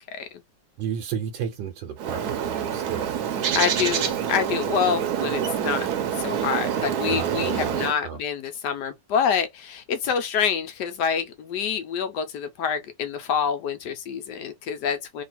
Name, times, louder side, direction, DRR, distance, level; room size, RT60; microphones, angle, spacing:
voice 1, 0.8-3.2 7.0-8.2, right 8 dB, 85° right, 1.4 m, -33 dB
Bird, 2.0-7.9, right 8 dB, 65° right, 1.1 m, -26 dB
voice 2, 3.5-5.9 6.2-15.2, left 7 dB, 70° left, 1.2 m, -27 dB
3.3 x 2.4 x 4.4 m
omnidirectional pair, 2.0 m